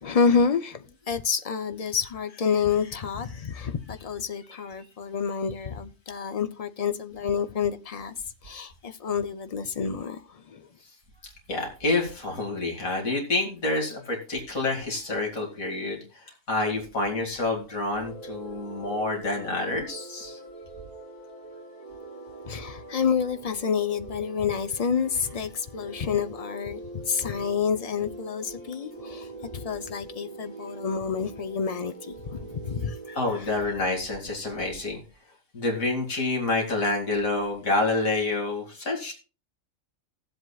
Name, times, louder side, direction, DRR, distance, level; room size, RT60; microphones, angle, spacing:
voice 1, 0.0-8.1 8.4-10.7 22.5-29.3 29.5-33.5, left 6 dB, 50° left, 0.4 m, -28 dB
voice 2, 11.5-20.4 33.1-35.0 35.5-39.1, left 2 dB, 80° left, 2.8 m, -28 dB
sound 1, 18.0-33.4, right 3 dB, 25° right, 4.6 m, -43 dB
17.5 x 7.8 x 2.3 m
omnidirectional pair, 1.4 m